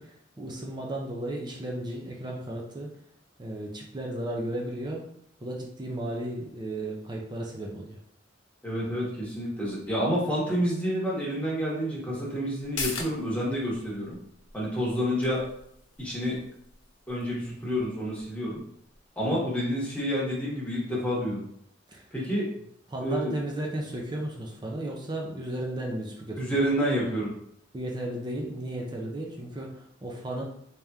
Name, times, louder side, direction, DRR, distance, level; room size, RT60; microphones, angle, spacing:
voice 1, 0.0-2.9 3.4-5.0 5.4-8.0 21.9-22.1 22.9-26.4 27.7-30.4, right 1 dB, 25° right, -1 dB, 0.5 m, -34 dB
voice 2, 8.6-14.2 14.5-15.4 16.0-16.4 17.1-18.6 19.2-21.4 22.1-22.5 23.0-23.3 26.4-27.3, equal, 5° left, -6 dB, 1.2 m, -29 dB
sound 1, 12.6-19.7 20.0-20.1, left 4 dB, 85° left, 0.7 m, -42 dB
3.5 x 2.9 x 3.5 m, 0.72 s
head